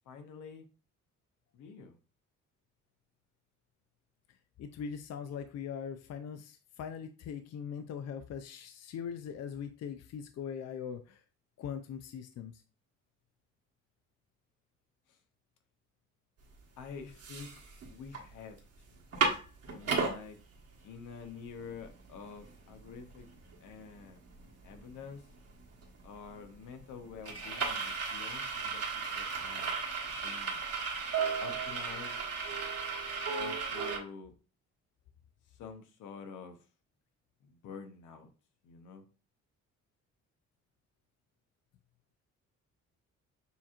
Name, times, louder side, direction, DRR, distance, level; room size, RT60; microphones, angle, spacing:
voice 1, 0.1-0.7 1.5-2.0 16.8-17.6 17.9-18.6 18.9-19.0 19.7-20.4 20.8-23.3 23.6-24.2 24.6-25.2 26.0-29.7 30.2-30.6 31.4-32.2 33.4-34.3 35.6-36.6 37.4-38.3 38.6-39.0, left 6 dB, 85° left, 0.9 m, -48 dB
voice 2, 4.6-11.2 11.6-12.6, left 7 dB, 60° left, 0.5 m, -41 dB
sound 1, 16.5-16.6 17.0-18.2 18.6-18.7 18.9-20.2 20.7-20.8 21.1-34.0, right 4 dB, 55° right, 1.4 m, -35 dB
6.9 x 2.8 x 2.4 m
cardioid pair, 90°, 30 cm